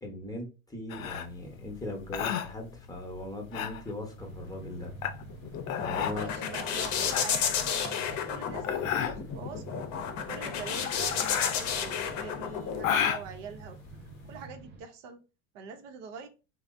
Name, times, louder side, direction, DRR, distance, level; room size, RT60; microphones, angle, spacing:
voice 1, 0.0-4.9 5.7-6.3, left 1 dB, 10° left, 0.9 m, -39 dB
sound 1, 0.9-14.4, left 9 dB, 80° left, 0.5 m, -34 dB
sound 2, 4.2-14.8, right 4 dB, 25° right, 0.5 m, -48 dB
sound 3, 5.2-13.1, left 7 dB, 45° left, 0.7 m, -32 dB
voice 2, 6.1-9.8 10.2-13.8 14.3-15.2 15.5-16.3, right 5 dB, 65° right, 0.7 m, -44 dB
3.1 x 2.0 x 2.5 m
hypercardioid pair, 85°, 40 cm